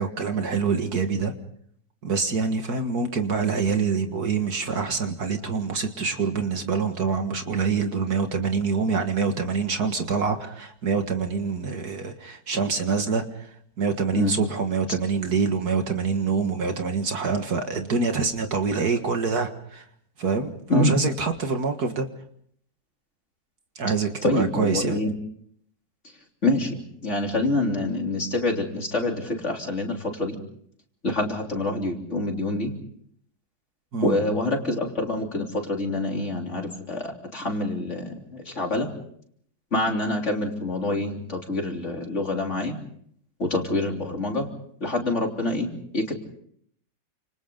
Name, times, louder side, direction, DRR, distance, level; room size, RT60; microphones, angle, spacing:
voice 1, 0.0-1.3 2.0-13.5 13.8-19.8 20.2-22.1 23.8-25.0 33.9-34.2, right 5 dB, 60° right, 6 dB, 2.2 m, -25 dB
voice 2, 24.2-25.1 26.4-30.4 31.0-32.7 34.0-38.9 39.7-42.8 43.4-44.5 44.8-45.7 45.9-46.1, left 2 dB, 40° left, 1 dB, 3.7 m, -26 dB
29.5 x 27.5 x 3.9 m, 0.65 s
omnidirectional pair, 2.0 m